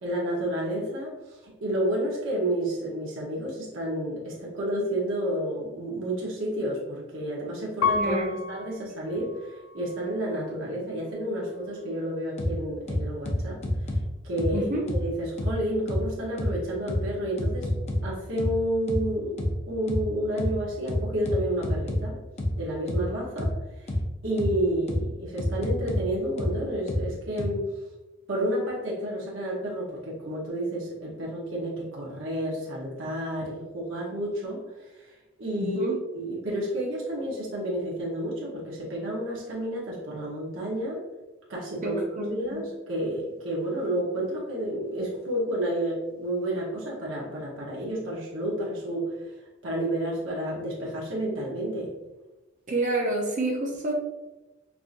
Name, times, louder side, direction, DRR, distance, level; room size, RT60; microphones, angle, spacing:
voice 1, 0.0-13.6 14.2-14.7 15.0-17.8 18.0-22.2 22.6-23.5 24.2-27.7 28.3-35.1 35.4-41.0 41.5-49.3 49.6-51.9, right 1 dB, 75° right, -5 dB, 1.0 m, -30 dB
Piano, 7.8-10.6 11.2-11.9, left 4 dB, 85° left, 0.4 m, -32 dB
voice 2, 7.9-8.5 14.5-14.8 35.6-36.0 41.8-42.7 52.7-53.9, right 2 dB, 40° right, -1 dB, 0.5 m, -29 dB
sound 1, 12.4-12.5 12.9-14.0 14.4-14.5 14.9-15.0 15.4-15.5 15.9-16.0 16.4-16.5 16.9-17.0 17.4-18.0 18.4-18.5 18.9-19.0 19.4-19.5 19.9-20.0 20.4-20.5 20.9-22.0 22.4-22.5 22.9-23.0 23.4-23.5 23.9-24.0 24.4-24.5 24.9-25.0 25.4-26.0 26.4-26.5 26.9-27.0 27.4-27.5, left 1 dB, 35° left, 0.6 m, -27 dB
4.7 x 2.5 x 2.5 m, 1.1 s
head